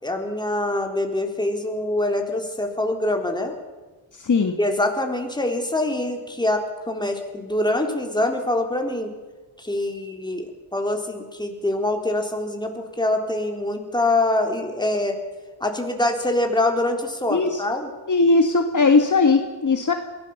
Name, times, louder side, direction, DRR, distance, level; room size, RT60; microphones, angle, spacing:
voice 1, 0.0-3.5 4.6-9.1 9.6-15.2 15.6-17.9, left 1 dB, 10° left, 3 dB, 3.7 m, -24 dB
voice 2, 4.1-4.6 17.3-17.6 18.1-19.9, left 3 dB, 40° left, 5 dB, 1.7 m, -19 dB
22.5 x 17.0 x 7.2 m, 1.3 s
cardioid pair, 80°, 46 cm